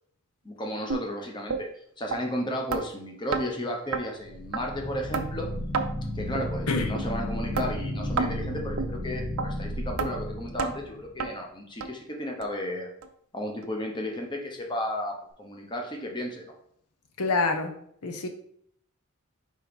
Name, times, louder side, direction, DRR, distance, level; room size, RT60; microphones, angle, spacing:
voice 1, 0.4-1.7 2.0-5.5 6.1-12.9 13.3-16.5, left 1 dB, 20° left, 1 dB, 1.0 m, -33 dB
sound 1, 0.9-1.0 1.5-1.6 2.1-2.2 2.7-2.8 3.3-3.4 3.9-4.0 4.5-4.6 5.1-5.3 5.7-5.9 6.3-6.5 7.0-7.1 7.5-7.7 8.2-8.3 8.8-8.9 9.4-9.5 10.0-10.1 10.6-10.7 11.2-11.3 11.8-11.9 12.4-12.5 13.0-13.1 13.6-13.7, right 5 dB, 75° right, 0.6 m, -29 dB
sound 2, 4.2-11.2, left 1 dB, 45° left, 2.3 m, -34 dB
voice 2, 17.2-17.7 18.0-18.3, left 3 dB, 85° left, 5 dB, 0.8 m, -26 dB
4.5 x 4.4 x 5.3 m, 0.67 s
head